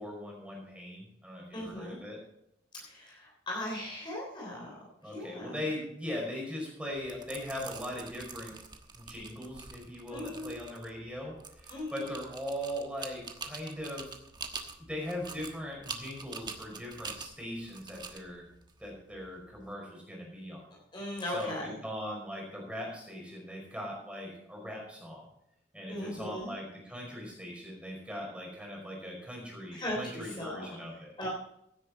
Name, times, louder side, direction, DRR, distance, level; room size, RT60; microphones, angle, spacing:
voice 1, 0.0-2.2 5.0-8.5 8.9-14.1 14.8-18.4 18.8-20.7 21.3-25.3 25.7-31.1, equal, 5° right, -1 dB, 5.1 m, -40 dB
voice 2, 1.5-2.0 2.7-4.7 5.0-5.5 10.1-10.6 11.7-12.1 20.9-21.7 25.9-26.5 29.7-30.7 31.2-31.3, left 1 dB, 25° left, -3 dB, 3.4 m, -38 dB
sound 1, 6.9-19.7, right 4 dB, 25° right, 1.3 m, -46 dB
16.0 x 9.4 x 4.2 m, 0.77 s
head